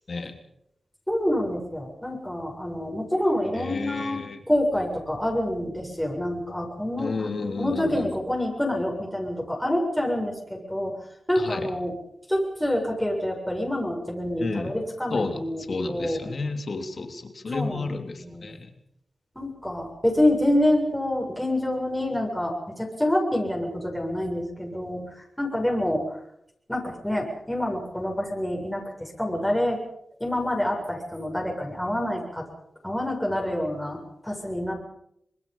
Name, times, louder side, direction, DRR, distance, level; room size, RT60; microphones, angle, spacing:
voice 1, 1.1-4.2 4.5-10.9 11.3-11.9 12.3-16.3 17.5-18.5 19.4-26.0 26.7-29.8 30.2-32.5 32.8-34.7, left 1 dB, 5° left, -1 dB, 7.4 m, -27 dB
voice 2, 3.5-4.4 7.0-8.1 11.3-11.7 14.4-14.7 15.1-18.7, left 3 dB, 60° left, 6 dB, 3.1 m, -31 dB
26.0 x 20.5 x 5.7 m, 0.76 s
cardioid pair, 45°, 0 cm